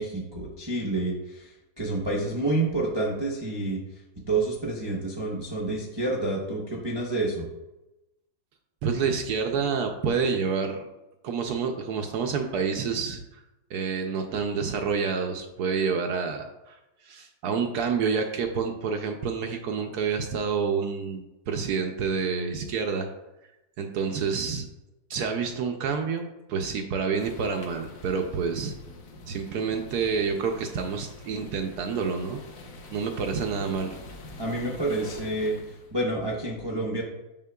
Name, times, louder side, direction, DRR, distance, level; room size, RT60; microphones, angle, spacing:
voice 1, 0.0-3.8 4.3-7.5 34.4-35.5 35.9-37.0, right 2 dB, 35° right, -3 dB, 0.4 m, -28 dB
voice 2, 8.8-10.8 11.2-13.4 13.7-23.1 23.8-24.7 25.1-28.7 29.3-32.4 32.9-33.9, right 5 dB, 70° right, 4 dB, 1.0 m, -28 dB
sound 1, 27.2-35.9, left 2 dB, 55° left, 1.1 m, -45 dB
7.3 x 5.7 x 2.3 m, 0.97 s
omnidirectional pair, 2.0 m